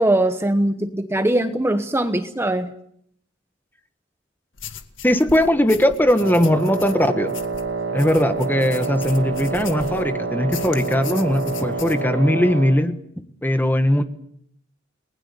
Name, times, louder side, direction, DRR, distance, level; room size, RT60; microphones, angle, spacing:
voice 1, 0.0-2.7, right 1 dB, 15° right, 8 dB, 1.0 m, -21 dB
sound 1, 4.6-10.1 10.5-12.0, left 7 dB, 80° left, 1.8 m, -39 dB
voice 2, 5.0-7.3 7.9-13.0 13.4-14.0, left 1 dB, 10° left, 9 dB, 1.5 m, -19 dB
Wind instrument woodwind instrument, 6.2-12.8, right 4 dB, 75° right, 2.0 m, -27 dB
29.5 x 20.0 x 7.0 m, 0.70 s
head